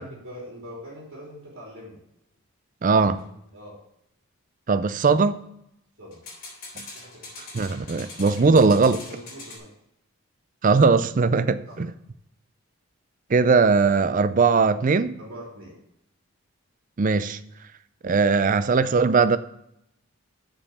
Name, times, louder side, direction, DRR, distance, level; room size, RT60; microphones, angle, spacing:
voice 1, 0.0-2.0 3.5-3.7 6.0-6.2 7.1-7.3 9.0-9.7 11.7-11.8 15.2-15.8, equal, 60° right, 3.1 m, -42 dB
voice 2, 2.8-3.2 4.7-5.4 7.5-9.0 10.6-11.9 13.3-15.2 17.0-17.4 18.0-19.4, right 4 dB, 35° right, 0.4 m, -19 dB
sound 1, 3.1-3.3 6.1-9.6, left 3 dB, 40° left, 3.6 m, -42 dB
7.0 x 5.4 x 7.0 m
head